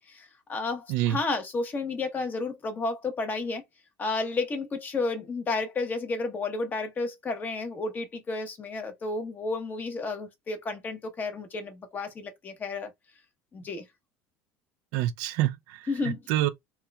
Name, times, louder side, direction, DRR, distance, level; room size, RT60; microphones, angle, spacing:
voice 1, 0.0-3.6 4.0-12.9 13.5-13.8 15.9-16.2, left 3 dB, 30° left, 1.0 m, -32 dB
voice 2, 14.9-16.5, right 14 dB, 70° right, 0.4 m, -27 dB
4.3 x 2.4 x 2.2 m
supercardioid pair, 110°, 6 cm